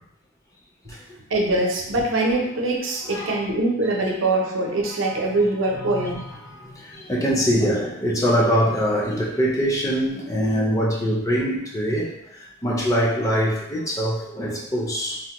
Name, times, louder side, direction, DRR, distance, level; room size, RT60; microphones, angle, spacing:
voice 1, 1.3-6.2, right 2 dB, 80° right, 0 dB, 0.6 m, -23 dB
voice 2, 3.0-3.4 4.8-5.2 5.7-12.1 12.6-15.2, equal, 15° left, -3 dB, 0.4 m, -23 dB
3.3 x 2.1 x 2.9 m, 0.80 s
head